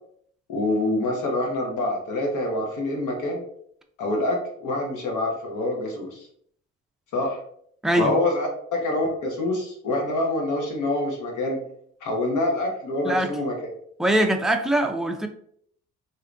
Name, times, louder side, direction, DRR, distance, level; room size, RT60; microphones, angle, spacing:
voice 1, 0.5-3.4 4.0-6.3 7.1-7.4 7.9-11.6 12.0-13.7, left 2 dB, 80° left, 1 dB, 1.0 m, -26 dB
voice 2, 14.0-15.3, right 1 dB, ahead, 4 dB, 0.3 m, -22 dB
3.2 x 2.7 x 2.5 m, 0.65 s
cardioid pair, 90°, 30 cm